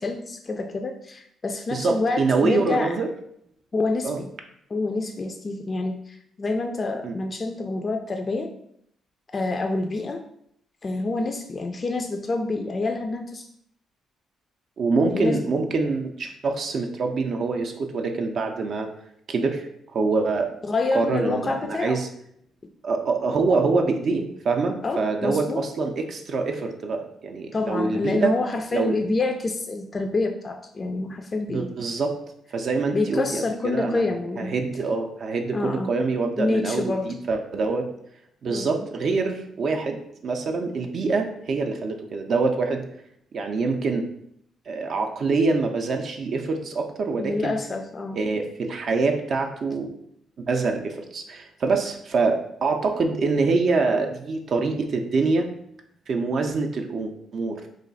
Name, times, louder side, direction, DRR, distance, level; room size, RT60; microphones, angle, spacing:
voice 1, 0.0-3.0 3.7-4.3 4.7-8.5 9.3-10.2 10.8-13.5 15.1-15.4 20.6-22.0 24.8-25.7 27.5-31.8 32.9-34.6 35.5-35.9 36.4-37.1 38.5-38.8 47.2-48.2, left 3 dB, 35° left, 5 dB, 0.3 m, -27 dB
voice 2, 1.7-3.1 4.0-4.2 7.0-7.1 14.8-18.9 19.3-20.5 20.9-22.1 22.8-28.3 28.7-29.0 31.5-32.1 32.5-34.0 34.4-37.9 38.4-42.9 43.3-44.1 44.7-47.5 48.2-49.9 50.5-55.5 56.1-57.7, right 4 dB, 55° right, 4 dB, 0.4 m, -25 dB
3.1 x 2.3 x 3.9 m, 0.71 s
cardioid pair, 90°, 0 cm